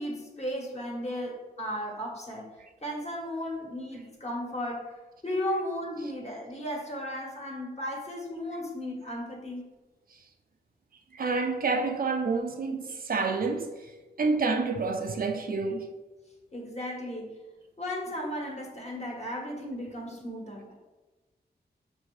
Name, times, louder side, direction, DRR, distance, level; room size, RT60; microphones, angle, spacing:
voice 1, 0.0-2.5 2.8-4.9 5.2-9.7 16.5-17.4 17.8-20.8, equal, 40° left, 1.3 m, -35 dB
voice 2, 11.1-13.7 14.2-15.9, right 4 dB, 55° right, 0.5 m, -28 dB
5.9 x 2.7 x 3.2 m
wide cardioid pair, 80°, 18 cm